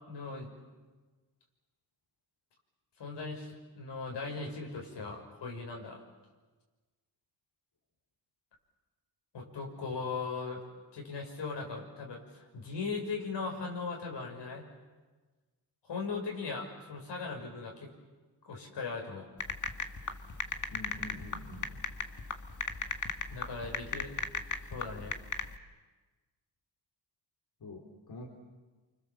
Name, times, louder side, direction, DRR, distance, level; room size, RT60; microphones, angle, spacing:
voice 1, 0.1-0.5 3.0-6.0 9.3-10.6 10.9-14.6 15.9-17.9 18.5-19.3 23.3-24.1 24.7-25.2, left 4 dB, 85° left, 1 dB, 6.4 m, -38 dB
sound 1, 19.4-25.5, left 4 dB, 45° left, 1.8 m, -36 dB
voice 2, 20.7-21.8 27.6-28.3, left 2 dB, 65° left, 0 dB, 3.9 m, -46 dB
28.5 x 25.5 x 7.5 m, 1.3 s
cardioid pair, 75°, 41 cm